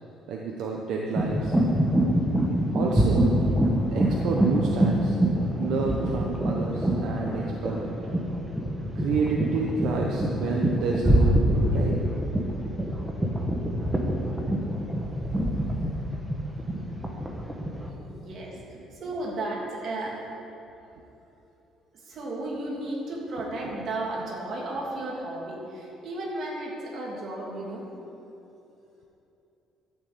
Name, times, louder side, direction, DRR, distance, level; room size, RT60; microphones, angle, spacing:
voice 1, 0.3-1.5 2.7-3.4 3.9-5.1 5.6-8.0 8.9-12.0 23.6-23.7, right 4 dB, 65° right, -1 dB, 1.2 m, -29 dB
sound 1, 1.1-17.9, right 1 dB, 5° right, 1.3 m, -25 dB
voice 2, 18.1-20.3 21.9-27.9, right 2 dB, 45° right, -3 dB, 3.0 m, -34 dB
12.5 x 7.2 x 8.5 m, 2.9 s
cardioid pair, 165°, 0 cm